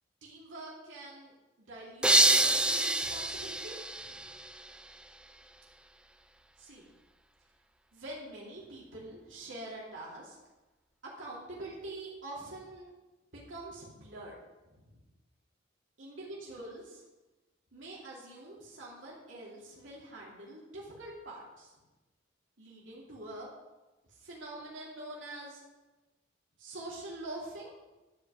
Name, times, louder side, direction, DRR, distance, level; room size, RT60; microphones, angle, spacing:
voice 1, 0.2-1.3 1.6-4.3 6.6-6.8 7.9-10.4 11.0-12.9 13.3-14.3 14.6-15.0 16.0-17.0 17.7-21.7 22.6-23.5 24.0-25.6 26.6-27.7, right 2 dB, 85° right, -5 dB, 2.7 m, -45 dB
sound 1, 2.0-4.8, right 2 dB, 5° right, 0.4 m, -27 dB
12.0 x 5.2 x 7.4 m, 1.1 s
head